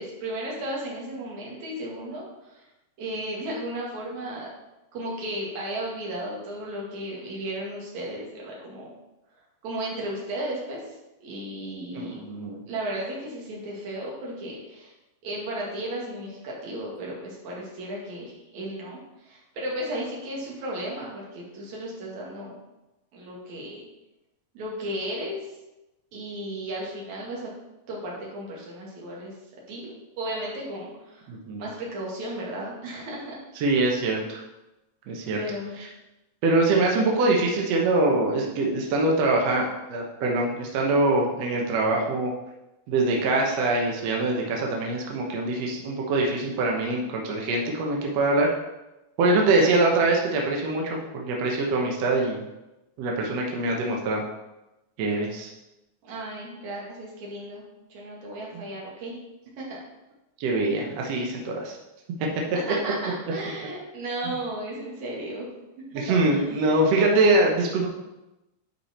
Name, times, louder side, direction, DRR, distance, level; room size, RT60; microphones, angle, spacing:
voice 1, 0.0-2.6 3.0-4.5 4.9-8.9 9.6-12.2 12.7-14.9 15.2-22.6 23.1-23.8 24.5-25.4 26.1-27.5 27.9-29.3 29.7-31.3 31.6-33.4 35.3-35.8 56.0-57.6 57.9-59.2 59.6-59.8 62.5-65.5 65.9-66.9, right 1 dB, 55° right, -3 dB, 3.0 m, -34 dB
voice 2, 11.9-12.6 31.3-31.7 33.6-34.4 35.1-35.4 36.4-42.3 42.9-48.5 49.2-52.4 53.0-54.2 55.0-55.5 58.5-58.6 60.4-61.8 66.0-67.9, right 2 dB, 75° right, 0 dB, 1.5 m, -23 dB
11.0 x 4.9 x 4.3 m, 0.98 s
omnidirectional pair, 4.5 m